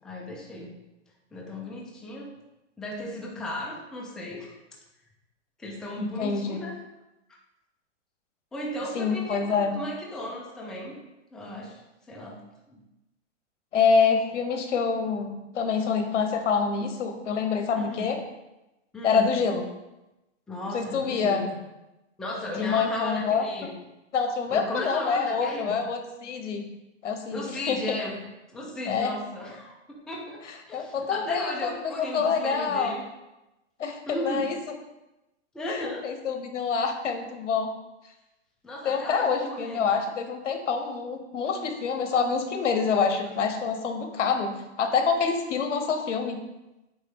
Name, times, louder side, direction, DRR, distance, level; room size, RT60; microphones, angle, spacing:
voice 1, 0.0-0.8 1.3-2.3 2.8-4.6 5.6-6.8 8.5-11.0 11.3-11.8 12.1-12.4 12.7-12.8 17.7-18.1 18.9-19.3 20.5-21.6 22.2-23.8 24.5-25.8 27.3-28.2 28.5-33.0 34.1-34.6 35.5-36.1 38.6-39.9, left 1 dB, ahead, -3 dB, 0.4 m, -36 dB
voice 2, 6.0-6.6 8.9-9.8 13.7-18.2 19.0-19.6 20.7-21.5 22.6-23.4 24.1-26.7 27.0-28.0 28.9-29.1 30.7-31.7 32.1-32.9 33.8-34.6 35.7-37.7 38.8-46.4, left 5 dB, 85° left, 5 dB, 1.1 m, -26 dB
8.3 x 3.2 x 3.6 m, 0.98 s
hypercardioid pair, 145°, 36 cm